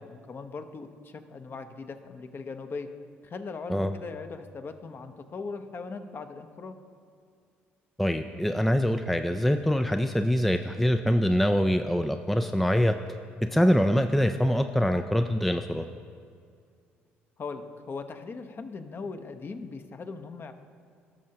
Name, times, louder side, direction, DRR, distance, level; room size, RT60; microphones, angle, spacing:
voice 1, 0.0-2.9 3.2-6.8 17.4-20.5, left 4 dB, 40° left, 7 dB, 0.9 m, -39 dB
voice 2, 8.0-13.0 13.4-15.9, equal, 5° left, 6 dB, 0.4 m, -24 dB
18.0 x 6.4 x 2.9 m, 2.2 s
hypercardioid pair, 55°, 6 cm